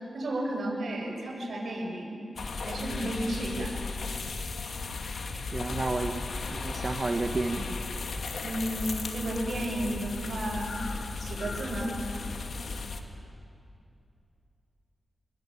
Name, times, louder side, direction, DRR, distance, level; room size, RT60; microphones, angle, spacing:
voice 1, 0.1-2.2 2.6-3.8 8.4-10.8 11.2-12.0, right 1 dB, 75° right, -1 dB, 7.7 m, -33 dB
sound 1, 2.4-13.0, left 4 dB, 75° left, 2.2 m, -35 dB
voice 2, 5.5-6.2 6.5-7.8, right 3 dB, 40° right, 4 dB, 1.5 m, -31 dB
27.5 x 21.0 x 8.9 m, 2.6 s
cardioid pair, 70°, 0 cm